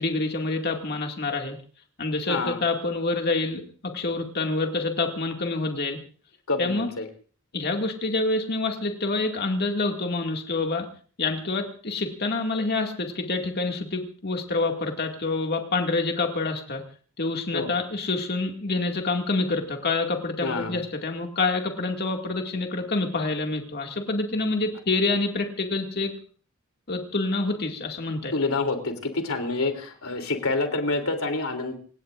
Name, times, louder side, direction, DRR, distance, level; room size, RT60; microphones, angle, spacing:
voice 1, 0.0-1.6 2.0-6.0 6.6-6.9 7.5-10.9 11.2-16.8 17.2-26.1 26.9-28.3, left 3 dB, 50° left, 3 dB, 2.2 m, -27 dB
voice 2, 2.3-2.6 6.5-7.1 17.5-17.7 20.4-20.8 28.3-31.7, left 3 dB, 75° left, 6 dB, 3.2 m, -27 dB
27.5 x 17.5 x 2.5 m, 0.42 s
head